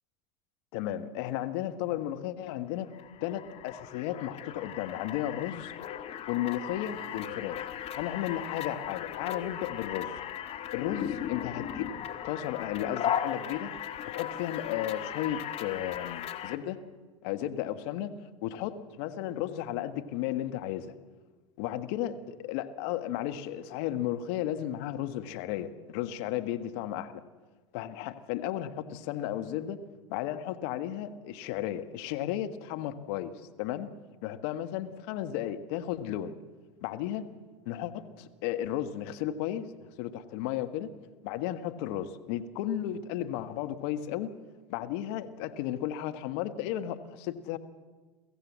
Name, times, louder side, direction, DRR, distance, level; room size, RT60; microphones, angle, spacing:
voice 1, 0.7-2.9 3.2-5.7 6.3-7.6 7.9-10.2 10.7-13.7 14.1-16.8 17.2-18.1 18.4-20.9 21.6-27.2 27.7-29.8 30.1-33.3 33.6-33.9 34.2-36.3 36.8-37.3 37.6-39.7 40.0-40.9 41.2-44.3 44.7-47.6, left 12 dB, 65° left, 9 dB, 1.5 m, -34 dB
sound 1, 2.9-16.6, left 10 dB, 40° left, 1.6 m, -37 dB
23.5 x 15.0 x 7.5 m, 1.4 s
hypercardioid pair, 90°, 15 cm